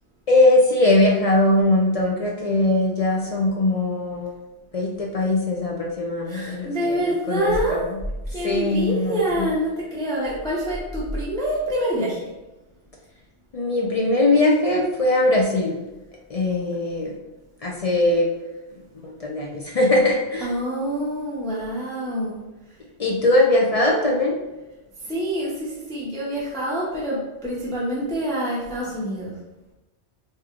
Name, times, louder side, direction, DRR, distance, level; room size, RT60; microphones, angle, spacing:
voice 1, 0.3-4.4 4.7-8.0 8.3-9.5 13.5-15.7 16.3-17.1 17.6-18.3 19.0-20.5 23.0-24.4, left 2 dB, 50° left, -2 dB, 0.4 m, -21 dB
voice 2, 6.3-7.8 8.3-12.3 20.4-22.4 25.0-29.3, right 1 dB, 5° left, -6 dB, 0.6 m, -26 dB
4.8 x 2.8 x 2.4 m, 1.0 s
omnidirectional pair, 1.1 m